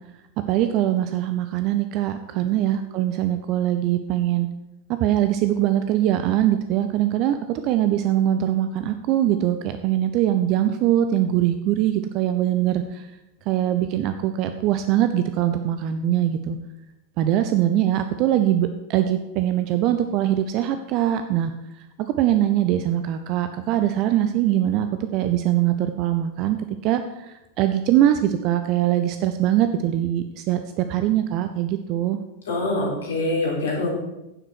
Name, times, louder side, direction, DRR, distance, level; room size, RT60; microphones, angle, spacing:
voice 1, 0.5-4.5 5.0-13.1 13.5-16.6 17.2-21.5 22.2-26.6 26.8-27.0 27.3-32.2, right 12 dB, 40° right, 9 dB, 0.6 m, -22 dB
voice 2, 32.5-33.9, left 2 dB, 60° left, -2 dB, 4.1 m, -24 dB
10.0 x 7.5 x 6.4 m, 0.92 s
figure-of-eight pair, 90°, 0 cm